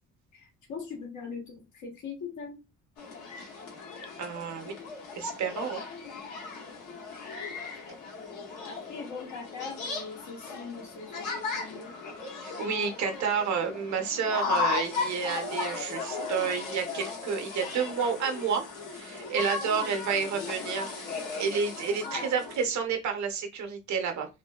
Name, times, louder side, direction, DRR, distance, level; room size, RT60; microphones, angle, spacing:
voice 1, 0.3-2.6 7.9-8.4 8.6-12.0 14.4-14.7 16.1-16.5 19.6-20.0 22.0-22.3, left 5 dB, 70° left, 1 dB, 1.2 m, -42 dB
sound 1, 3.0-22.7, left 4 dB, 90° left, 1.1 m, -36 dB
voice 2, 4.2-4.7 5.1-5.8 12.4-18.6 18.9-24.3, right 6 dB, 65° right, 5 dB, 0.8 m, -30 dB
2.7 x 2.6 x 2.3 m, 0.26 s
cardioid pair, 90°, 30 cm